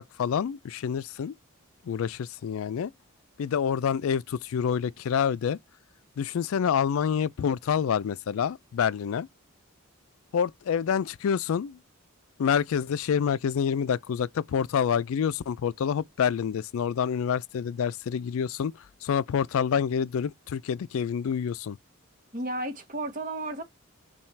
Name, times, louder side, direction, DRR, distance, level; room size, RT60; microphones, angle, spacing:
voice 1, 0.0-1.3 1.8-2.9 3.4-5.6 6.2-9.3 10.3-11.8 12.4-21.8, left 7 dB, 70° left, 0.3 m, -27 dB
voice 2, 22.3-23.6, right 2 dB, 35° right, 1.0 m, -33 dB
5.6 x 2.4 x 3.2 m
head